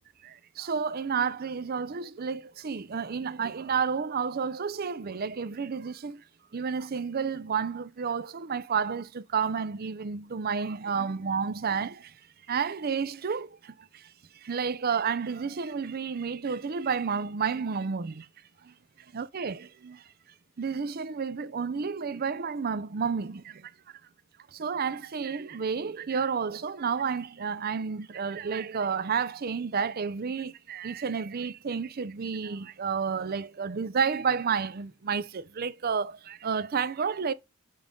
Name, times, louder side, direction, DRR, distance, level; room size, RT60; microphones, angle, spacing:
voice 1, 0.2-6.2 6.5-12.1 12.5-14.1 14.4-18.3 18.6-18.7 19.1-20.0 20.6-23.7 24.5-37.3, right 6 dB, 45° right, 0.5 m, -31 dB
7.0 x 3.7 x 5.1 m
head